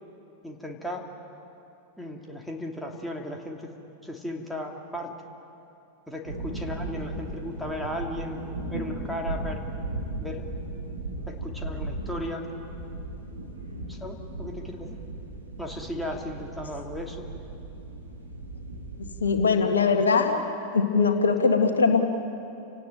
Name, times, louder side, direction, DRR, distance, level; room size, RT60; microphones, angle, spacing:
voice 1, 0.4-1.1 2.0-3.7 4.0-5.1 6.1-9.6 10.2-10.4 11.3-12.5 13.6-15.0 15.6-17.3, left 1 dB, ahead, 0 dB, 2.8 m, -36 dB
sound 1, 6.2-19.4, right 2 dB, 80° right, 3.3 m, -36 dB
voice 2, 19.2-20.4 20.7-22.0, left 4 dB, 70° left, 5 dB, 1.8 m, -21 dB
30.0 x 18.0 x 9.2 m, 2.9 s
figure-of-eight pair, 90°, 0 cm